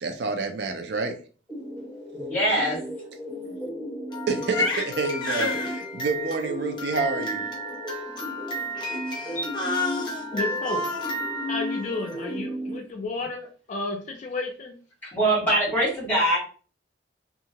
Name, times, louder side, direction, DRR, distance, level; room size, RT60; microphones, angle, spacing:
voice 1, 0.0-1.1 3.4-3.6 4.3-7.4, right 3 dB, 65° right, 6 dB, 0.4 m, -28 dB
sound 1, 1.5-12.8, equal, 5° right, 1.0 m, -36 dB
voice 2, 2.1-2.8 15.0-16.4, right 1 dB, 10° left, -5 dB, 1.5 m, -23 dB
Crying sobbing, 4.1-12.3, left 1 dB, 25° left, 0.9 m, -31 dB
voice 3, 10.3-10.8 11.5-14.8, left 3 dB, 40° left, 3 dB, 0.3 m, -32 dB
2.7 x 2.4 x 2.8 m, 0.39 s
head